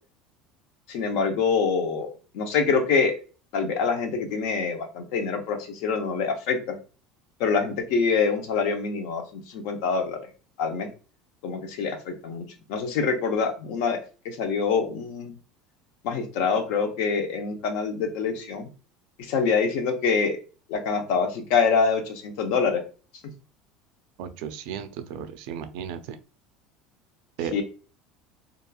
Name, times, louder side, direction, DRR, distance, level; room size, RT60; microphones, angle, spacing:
voice 1, 0.9-3.1 3.5-6.8 7.4-10.2 10.6-10.9 11.4-14.0 14.2-15.3 16.0-18.7 19.2-20.4 20.7-22.8 27.5-27.6, left 5 dB, 70° left, 5 dB, 0.6 m, -25 dB
voice 2, 24.2-26.2 27.4-27.6, right 8 dB, 70° right, 9 dB, 0.4 m, -35 dB
2.9 x 2.4 x 2.2 m, 0.36 s
cardioid pair, 145°, 0 cm